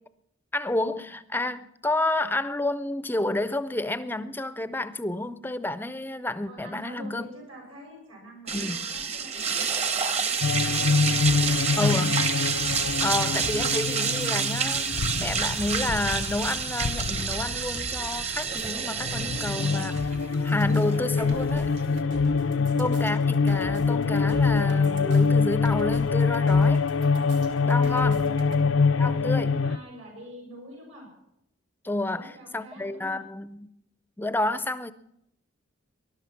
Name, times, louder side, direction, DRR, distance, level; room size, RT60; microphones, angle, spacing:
voice 1, 0.5-7.3 8.5-8.8 11.8-12.2 13.0-20.2 20.4-21.7 22.8-26.8 27.6-28.3 29.0-29.5 31.8-33.7 34.2-34.9, left 2 dB, 10° left, 0.5 m, -30 dB
voice 2, 6.5-12.0 28.1-28.8 29.0-31.1 32.0-33.2, equal, 85° right, 6.7 m, -46 dB
sound 1, 8.5-22.0, right 5 dB, 30° right, 1.0 m, -28 dB
sound 2, 10.4-18.6 18.9-29.8, left 4 dB, 75° left, 0.5 m, -25 dB
sound 3, 11.2-28.6, right 1 dB, 65° right, 2.5 m, -44 dB
20.5 x 12.0 x 5.8 m
head